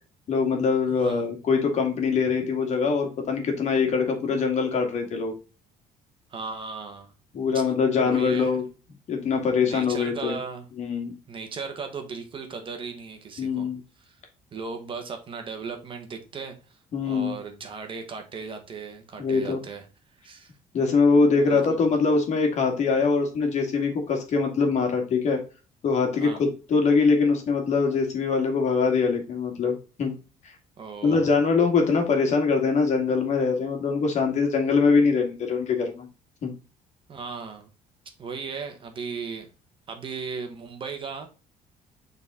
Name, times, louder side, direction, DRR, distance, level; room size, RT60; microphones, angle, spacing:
voice 1, 0.3-5.3 7.3-8.6 9.1-10.3 10.8-11.1 13.4-13.8 16.9-17.4 19.2-19.6 20.7-25.4 25.8-30.1 31.0-36.1 36.4-36.5, left 4 dB, 50° left, 3 dB, 2.0 m, -23 dB
voice 2, 0.9-1.2 6.3-7.1 7.5-7.6 8.0-8.6 9.6-10.7 11.3-13.7 14.0-14.2 14.5-16.5 17.0-19.8 20.2-20.5 21.5-21.8 26.2-26.4 30.8-31.3 37.1-37.7 38.2-39.5 39.9-41.3, right 5 dB, 35° right, 5 dB, 1.4 m, -36 dB
6.9 x 4.1 x 3.7 m, 0.33 s
cardioid pair, 135°, 15 cm